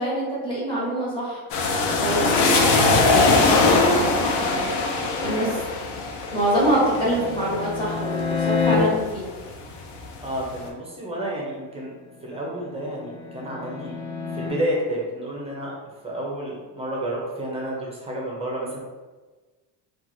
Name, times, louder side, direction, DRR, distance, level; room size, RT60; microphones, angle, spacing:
voice 1, 0.0-1.4 2.0-4.7 5.2-5.6 6.3-9.3, right 1 dB, 10° left, -8 dB, 1.1 m, -25 dB
sound 1, 1.5-9.2 9.6-10.4, left 3 dB, 65° left, 0.6 m, -22 dB
sound 2, 6.5-8.7 12.1-14.5, left 6 dB, 90° left, 0.8 m, -29 dB
voice 2, 10.2-11.9 12.2-14.0 14.3-15.7 16.0-18.8, right 1 dB, 15° right, -4 dB, 0.5 m, -30 dB
2.9 x 2.4 x 2.6 m, 1.3 s
cardioid pair, 135°, 46 cm